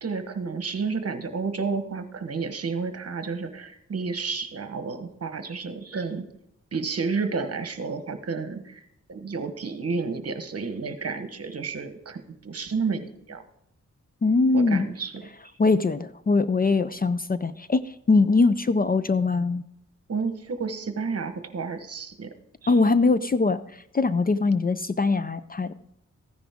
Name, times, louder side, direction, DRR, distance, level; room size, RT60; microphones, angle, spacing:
voice 1, 0.0-6.2 6.7-8.8 9.1-13.4 14.5-15.2 20.1-22.3 22.6-22.7, right 4 dB, 55° right, 8 dB, 1.1 m, -31 dB
voice 2, 14.2-14.9 15.6-19.6 22.7-25.7, left 3 dB, 30° left, 13 dB, 0.4 m, -22 dB
14.5 x 9.9 x 3.6 m, 0.75 s
wide cardioid pair, 90°, 30 cm